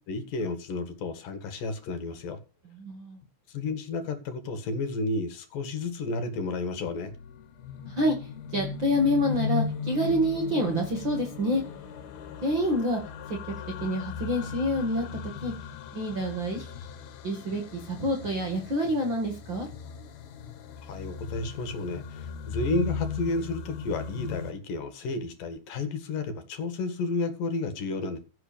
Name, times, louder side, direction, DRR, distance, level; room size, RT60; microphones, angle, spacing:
voice 1, 0.1-2.4 3.5-7.1 20.8-28.2, left 3 dB, 65° left, 3.4 m, -32 dB
voice 2, 2.6-3.2 7.9-11.6 12.4-13.0 13.3-13.4 13.8-15.5 15.9-16.7 17.2-19.7, equal, 40° right, 2.1 m, -27 dB
sound 1, 6.5-24.5, left 6 dB, 85° left, 3.3 m, -37 dB
16.0 x 6.3 x 6.8 m
omnidirectional pair, 4.3 m